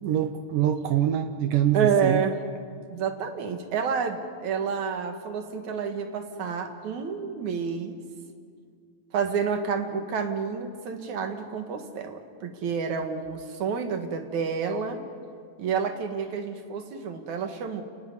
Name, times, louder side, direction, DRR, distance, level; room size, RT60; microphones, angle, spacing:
voice 1, 0.0-2.2, right 10 dB, 75° right, 8 dB, 2.0 m, -24 dB
voice 2, 1.7-2.4 2.9-8.0 9.1-15.0 15.6-17.8, right 6 dB, 55° right, 6 dB, 2.6 m, -29 dB
30.0 x 18.5 x 9.8 m, 2.2 s
omnidirectional pair, 5.0 m